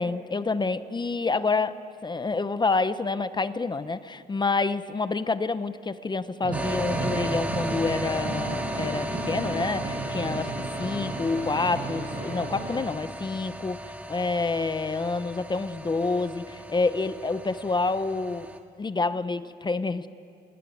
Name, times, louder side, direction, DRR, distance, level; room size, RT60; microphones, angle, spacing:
voice 1, 0.0-1.8 2.0-10.5 10.8-13.8 14.1-18.5 18.8-20.1, left 3 dB, 25° left, 13 dB, 0.8 m, -28 dB
sound 1, 6.4-12.8, right 3 dB, 55° right, 6.9 m, -33 dB
sound 2, 6.5-18.6, equal, 10° right, 1.9 m, -36 dB
28.5 x 20.0 x 9.3 m, 2.4 s
cardioid pair, 120°, 18 cm